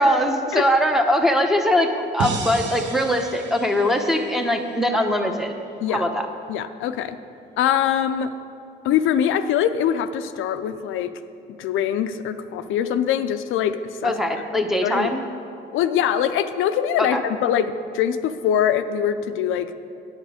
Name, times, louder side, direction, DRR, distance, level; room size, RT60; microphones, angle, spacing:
voice 1, 0.0-5.6 5.9-6.3 14.0-15.2 17.0-17.2, equal, ahead, 4 dB, 0.8 m, -21 dB
sound 1, 2.2-5.3, right 4 dB, 70° right, 0.9 m, -33 dB
voice 2, 6.5-7.2 7.6-8.3 8.8-11.1 11.5-14.1 14.8-15.1 15.7-19.7, left 9 dB, 85° left, 10 dB, 0.4 m, -23 dB
8.8 x 7.9 x 5.0 m, 2.5 s
cardioid pair, 90°, 20 cm